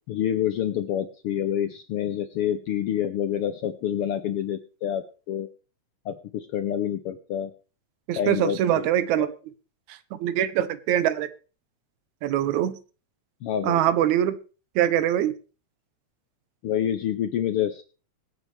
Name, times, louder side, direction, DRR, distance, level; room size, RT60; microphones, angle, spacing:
voice 1, 0.1-5.5 6.0-7.5 8.2-8.9 9.2-9.3 13.4-13.8 16.6-17.8, left 10 dB, 75° left, 10 dB, 1.3 m, -27 dB
voice 2, 8.1-9.3 10.1-11.3 12.2-12.8 13.6-14.4 14.8-15.4, right 11 dB, 80° right, 14 dB, 2.2 m, -23 dB
23.0 x 8.1 x 3.3 m, 0.36 s
omnidirectional pair, 3.3 m